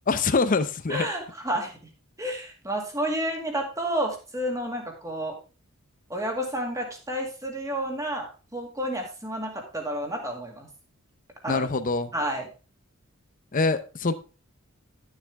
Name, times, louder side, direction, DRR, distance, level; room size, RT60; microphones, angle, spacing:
voice 1, 0.1-1.1 11.5-12.1 13.5-14.1, left 3 dB, 40° left, 11 dB, 0.6 m, -24 dB
voice 2, 0.9-1.9 2.2-5.4 6.1-10.7 11.4-11.7 12.1-12.5, right 1 dB, 15° right, 2 dB, 2.1 m, -30 dB
11.5 x 7.3 x 3.5 m, 0.34 s
head